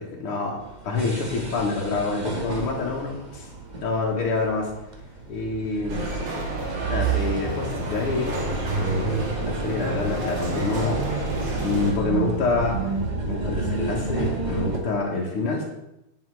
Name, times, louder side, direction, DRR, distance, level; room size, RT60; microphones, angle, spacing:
voice 1, 0.0-3.5 3.8-4.7 5.3-6.1 6.9-8.4 8.8-11.0 11.6-13.0 13.3-15.6, left 3 dB, 85° left, -3 dB, 2.4 m, -27 dB
sound 1, 0.6-14.8, right 4 dB, 25° right, 1.2 m, -30 dB
sound 2, 5.9-11.9, right 1 dB, 60° right, 2.4 m, -32 dB
9.7 x 7.3 x 4.7 m, 0.88 s
omnidirectional pair, 2.4 m